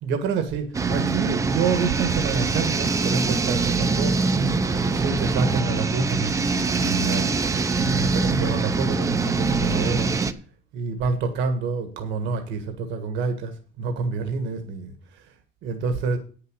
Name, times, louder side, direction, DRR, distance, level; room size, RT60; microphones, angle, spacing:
voice 1, 0.0-4.2 4.9-6.3 6.8-7.3 7.7-10.1 10.7-14.9 15.6-16.2, right 5 dB, 65° right, 6 dB, 1.5 m, -27 dB
sound 1, 0.7-10.3, right 4 dB, 15° right, 0.5 m, -23 dB
9.3 x 6.8 x 6.3 m, 0.40 s
cardioid pair, 170°, 21 cm